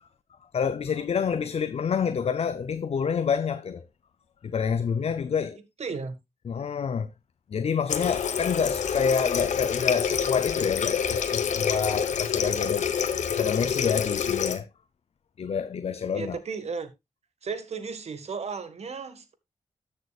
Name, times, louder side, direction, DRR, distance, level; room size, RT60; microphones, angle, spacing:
voice 1, 0.5-3.9 4.4-5.6 6.5-7.1 7.5-12.9 13.3-14.7 15.4-16.4, left 6 dB, 60° left, 0.6 m, -28 dB
voice 2, 5.8-6.2 16.1-16.9 17.4-19.3, right 5 dB, 65° right, 1.6 m, -34 dB
Water tap faucet, 7.9-14.6, left 7 dB, 90° left, 1.0 m, -27 dB
13.5 x 6.7 x 2.4 m
cardioid pair, 75°, 12 cm